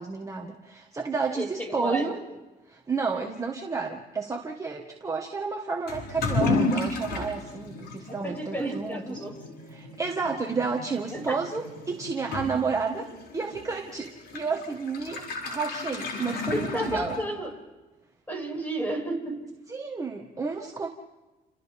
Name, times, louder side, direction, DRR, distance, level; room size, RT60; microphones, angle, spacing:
voice 1, 0.0-2.2 2.7-9.2 9.7-17.2 19.7-20.9, right 4 dB, 20° right, 1 dB, 1.8 m, -31 dB
voice 2, 1.3-2.2 8.1-9.4 11.1-11.4 16.3-17.5 18.3-19.5, right 1 dB, 10° left, 2 dB, 6.7 m, -32 dB
Toilet flush / Liquid, 5.9-17.5, left 3 dB, 75° left, 6.6 m, -33 dB
29.5 x 29.5 x 3.7 m, 1.1 s
cardioid pair, 110°, 17 cm